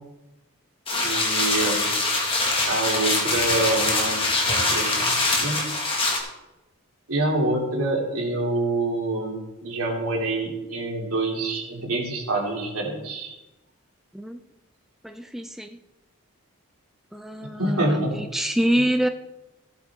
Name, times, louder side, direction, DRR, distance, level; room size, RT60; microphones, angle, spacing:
sound 1, 0.9-6.2, left 2 dB, 25° left, 1.8 m, -23 dB
voice 1, 1.0-1.9 2.7-5.6 7.1-13.3 17.6-18.2, right 2 dB, 85° right, -2 dB, 2.9 m, -26 dB
voice 2, 15.0-15.8 17.1-19.1, right 1 dB, ahead, 6 dB, 0.4 m, -26 dB
15.5 x 8.1 x 3.6 m, 1.0 s
head